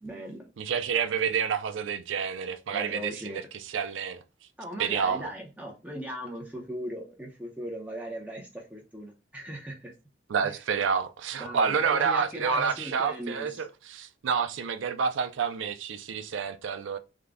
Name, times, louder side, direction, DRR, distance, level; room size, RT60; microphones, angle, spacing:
voice 1, 0.0-0.5 2.7-3.4 4.6-9.9 10.4-10.6 11.4-13.5, equal, 10° right, 0.7 m, -38 dB
voice 2, 0.6-4.2 4.8-5.3 10.3-17.0, right 6 dB, 80° right, 0.4 m, -29 dB
3.7 x 2.2 x 3.4 m
head